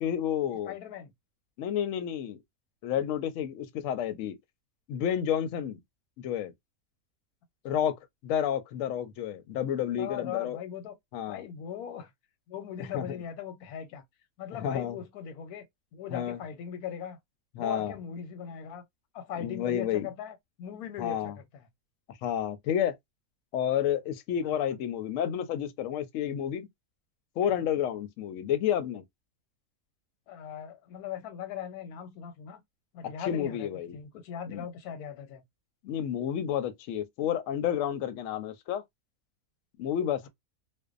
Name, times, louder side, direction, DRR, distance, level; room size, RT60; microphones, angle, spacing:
voice 1, 0.0-0.7 1.6-2.4 2.8-4.4 4.9-5.8 6.2-6.5 7.6-7.9 8.2-10.6 11.1-11.4 12.8-13.2 14.5-15.0 16.1-16.4 17.6-17.9 19.4-20.1 21.0-21.4 22.2-22.9 23.5-26.7 27.4-29.0 33.2-34.0 34.5-34.6 35.8-38.8 39.8-40.3, left 9 dB, 70° left, 0.8 m, -30 dB
voice 2, 0.7-1.1 7.7-7.9 10.0-10.9 11.3-12.1 12.5-14.0 14.4-15.6 15.9-17.2 17.6-18.8 19.1-21.7 24.4-24.7 30.3-32.6 32.9-35.4, left 8 dB, 90° left, 1.1 m, -39 dB
2.6 x 2.1 x 2.4 m
omnidirectional pair, 1.6 m